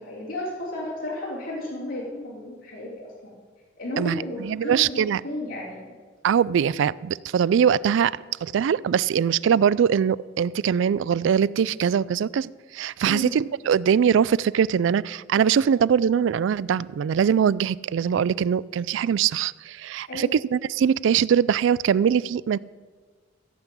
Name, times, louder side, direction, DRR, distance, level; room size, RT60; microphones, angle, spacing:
voice 1, 0.0-3.3 3.8-5.9 13.0-13.3 20.1-20.4, left 1 dB, 75° left, -7 dB, 3.1 m, -33 dB
voice 2, 4.0-5.2 6.2-22.6, right 8 dB, 65° right, 22 dB, 0.3 m, -22 dB
15.5 x 5.9 x 8.3 m, 1.5 s
head